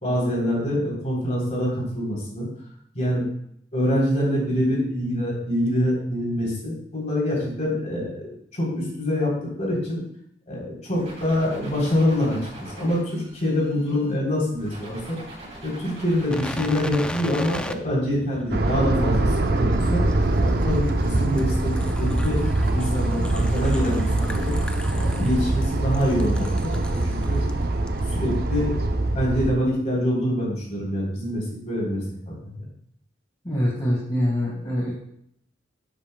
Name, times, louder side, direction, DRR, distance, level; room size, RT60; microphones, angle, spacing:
voice 1, 0.0-2.5 3.0-3.3 3.7-10.0 10.5-12.4 12.8-15.2 15.6-20.0 20.4-22.4 22.7-24.5 24.9-27.5 28.1-28.9 29.1-32.6, equal, 40° left, -3 dB, 3.6 m, -25 dB
sound 1, 10.9-14.1 14.6-16.9, right 1 dB, 35° right, 3.7 m, -42 dB
sound 2, 16.3-27.5 27.9-28.0, equal, 5° left, 0.4 m, -33 dB
sound 3, 18.5-29.5, right 2 dB, 55° right, 0.6 m, -24 dB
voice 2, 33.4-34.9, equal, 25° left, -5 dB, 1.7 m, -24 dB
11.0 x 8.2 x 2.3 m, 0.70 s
head